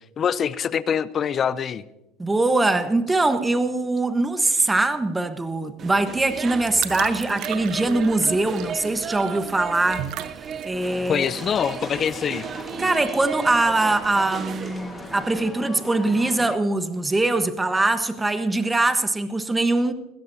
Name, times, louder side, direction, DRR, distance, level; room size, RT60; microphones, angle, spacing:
voice 1, 0.2-1.8 11.1-12.5, left 8 dB, 35° left, 0.6 m, -24 dB
voice 2, 2.2-10.1 10.6-11.3 12.8-19.9, right 2 dB, 15° right, 1.2 m, -22 dB
sound 1, 5.8-15.5, right 7 dB, 40° right, 0.7 m, -35 dB
sound 2, 6.1-12.9, right 12 dB, 60° right, 1.0 m, -37 dB
sound 3, 10.7-16.6, left 3 dB, 20° left, 1.6 m, -39 dB
20.0 x 15.5 x 2.8 m
supercardioid pair, 95°, 0 cm